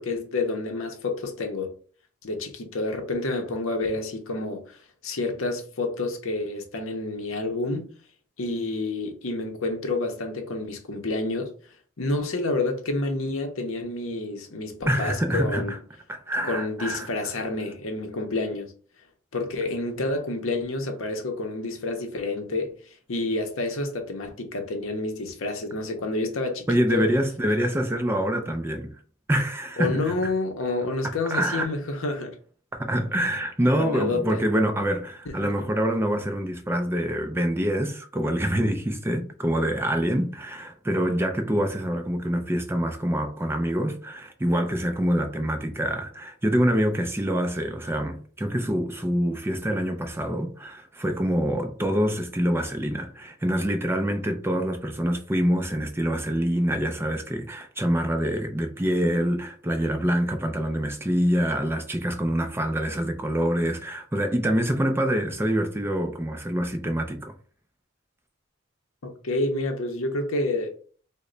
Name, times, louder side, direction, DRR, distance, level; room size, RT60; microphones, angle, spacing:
voice 1, 0.0-1.7 2.2-7.9 8.4-11.5 12.0-15.7 16.4-18.7 19.3-27.1 29.8-32.4 33.8-34.4 35.3-35.5 69.0-70.7, left 2 dB, 65° left, 0.7 m, -29 dB
voice 2, 14.9-15.8 16.1-17.1 26.7-29.0 29.3-30.1 31.3-31.7 32.7-67.3, equal, 10° right, 0.4 m, -25 dB
3.0 x 2.1 x 3.8 m
head